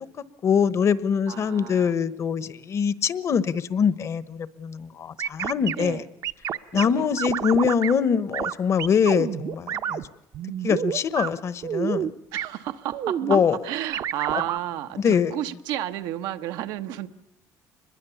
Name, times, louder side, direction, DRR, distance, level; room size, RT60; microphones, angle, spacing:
voice 1, 0.4-6.0 6.7-10.0 10.6-12.1 13.3-13.6 14.3-14.4 15.0-15.3, left 7 dB, 45° left, 16 dB, 1.0 m, -23 dB
voice 2, 1.3-1.9 5.8-6.0 6.7-7.1 12.3-13.4 13.6-17.1, right 12 dB, 85° right, 9 dB, 1.0 m, -32 dB
sound 1, 5.2-5.7 6.2-6.9 7.2-7.9 8.3-8.5 8.8-10.0 10.3-11.3 11.6-12.1 12.4-12.5 12.9-13.4 13.9-14.6, right 9 dB, 55° right, 0.8 m, -28 dB
25.0 x 21.5 x 7.0 m, 0.86 s
cardioid pair, 115°, 7 cm